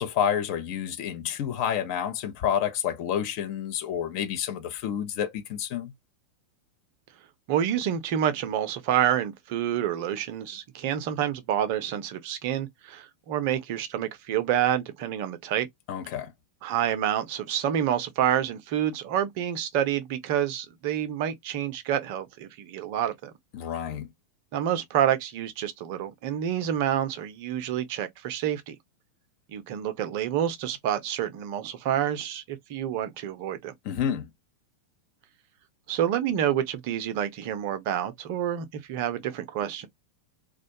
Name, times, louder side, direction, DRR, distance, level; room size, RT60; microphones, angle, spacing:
voice 1, 0.0-5.9 15.9-16.3 23.5-24.1 33.8-34.3, left 9 dB, 45° left, 0.6 m, -29 dB
voice 2, 7.5-15.7 16.6-23.3 24.5-28.8 29.5-33.7 35.9-39.9, right 10 dB, 45° right, 0.5 m, -28 dB
2.3 x 2.2 x 2.7 m
figure-of-eight pair, 90°, 0 cm